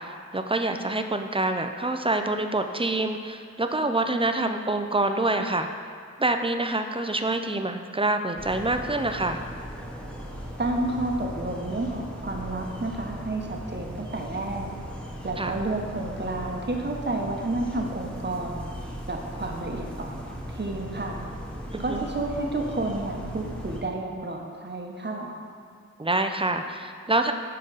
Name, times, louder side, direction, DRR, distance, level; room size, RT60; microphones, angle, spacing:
voice 1, 0.0-5.7 6.2-9.4 15.4-15.6 21.7-22.0 26.0-27.3, right 2 dB, 20° right, 6 dB, 0.4 m, -26 dB
sound 1, 8.4-23.8, equal, 5° left, 1.0 m, -38 dB
voice 2, 10.6-14.8 15.2-18.6 19.1-21.2 21.8-25.3, right 2 dB, 35° right, 1 dB, 0.9 m, -30 dB
9.8 x 3.8 x 3.9 m, 2.3 s
wide cardioid pair, 60°, 30 cm